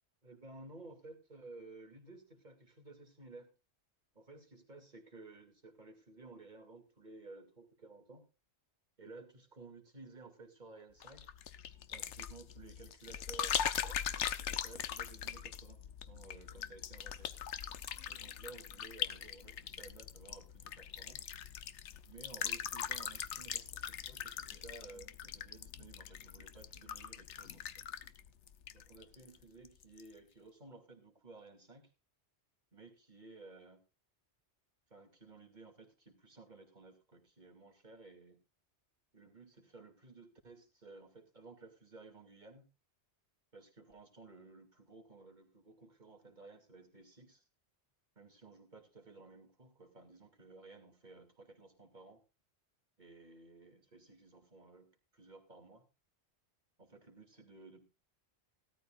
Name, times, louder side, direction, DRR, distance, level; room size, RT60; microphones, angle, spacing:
voice 1, 0.2-3.5 4.1-8.2 9.0-11.3 11.9-17.3 18.1-21.3 22.1-27.9 28.7-31.9 32.7-33.8 34.9-38.4 39.1-42.6 43.5-47.4 48.2-52.2 53.0-54.9 55.1-55.9 56.8-57.9, right 3 dB, 40° right, 4 dB, 2.8 m, -55 dB
sound 1, 11.0-29.4 29.6-30.1, left 9 dB, 85° left, 1.1 m, -41 dB
17.0 x 13.0 x 2.5 m, 0.29 s
omnidirectional pair, 1.2 m